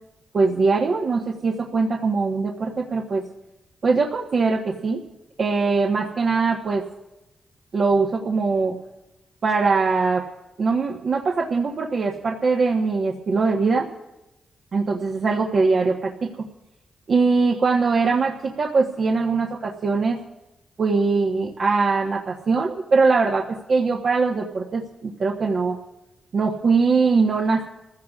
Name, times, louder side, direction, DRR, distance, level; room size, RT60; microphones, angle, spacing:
voice 1, 0.3-3.2 3.8-5.0 5.4-6.8 7.7-8.8 9.4-10.2 10.6-13.9 14.7-16.3 17.1-20.2 20.8-25.8 26.3-27.6, right 4 dB, 60° right, -1 dB, 1.2 m, -21 dB
29.0 x 15.0 x 2.5 m, 0.97 s
supercardioid pair, 50°, 0 cm